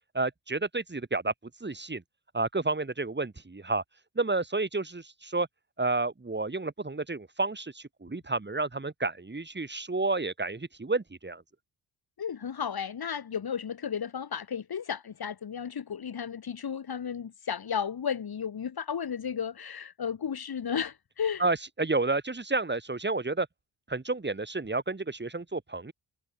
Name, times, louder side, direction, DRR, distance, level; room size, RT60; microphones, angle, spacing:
voice 1, 0.1-1.3 1.6-2.0 2.3-3.8 4.1-5.5 5.8-11.4 21.4-23.5 23.9-25.9, right 3 dB, 25° right, 5.1 m, -30 dB
voice 2, 12.2-21.4, left 7 dB, 55° left, 3.8 m, -33 dB
cardioid pair, 70°, 43 cm